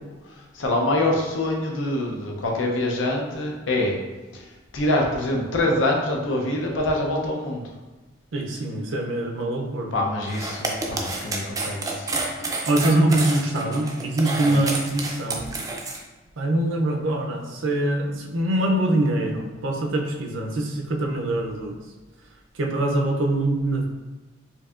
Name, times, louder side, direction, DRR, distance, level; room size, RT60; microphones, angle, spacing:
voice 1, 0.0-4.0 4.3-4.4 4.7-7.6 9.9-12.1 14.4-14.6, left 1 dB, 75° left, 0 dB, 0.6 m, -25 dB
voice 2, 8.3-9.9 12.7-15.6 16.4-21.7 22.6-23.9, right 1 dB, 85° right, 2 dB, 0.5 m, -23 dB
sound 1, 10.2-16.0, right 3 dB, 20° right, 0.4 m, -29 dB
4.5 x 2.7 x 2.4 m, 1.2 s
head